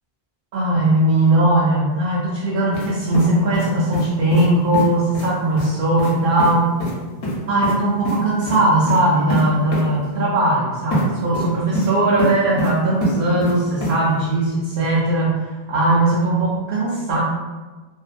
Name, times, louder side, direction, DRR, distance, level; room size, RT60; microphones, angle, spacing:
voice 1, 0.5-6.7 7.5-15.4 15.7-17.2, right 1 dB, 65° right, -6 dB, 0.7 m, -19 dB
sound 1, 2.7-2.9 3.1-4.1 4.3-4.5 4.7-4.8 5.1-5.3 5.6-5.7 6.0-6.1 6.4-6.5 6.8-6.9 7.2-7.7 8.0-8.2 8.4-8.6 8.9-9.0 9.3-9.4 9.7-9.8 10.9-11.0 11.3-11.9 12.2-12.7 13.0-13.5 13.8-13.9, left 1 dB, 70° left, 0.9 m, -24 dB
2.5 x 2.1 x 2.4 m, 1.3 s
omnidirectional pair, 1.1 m